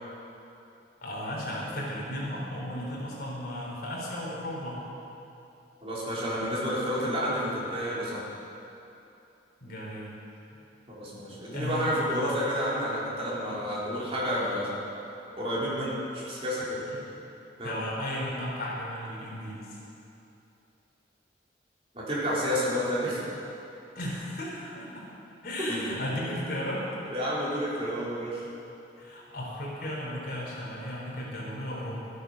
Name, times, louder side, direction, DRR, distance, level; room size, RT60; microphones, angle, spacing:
voice 1, 1.0-4.8 9.6-10.1 11.5-12.0 16.9-17.0 17.6-19.8 24.0-25.1 25.4-26.9 29.0-32.1, left 1 dB, 55° left, -4 dB, 3.6 m, -35 dB
voice 2, 5.8-8.2 10.9-14.8 15.3-16.8 17.6-17.8 21.9-23.2 25.6-26.0 27.1-28.4, equal, 35° right, -8 dB, 3.6 m, -30 dB
13.0 x 10.5 x 6.4 m, 2.8 s
head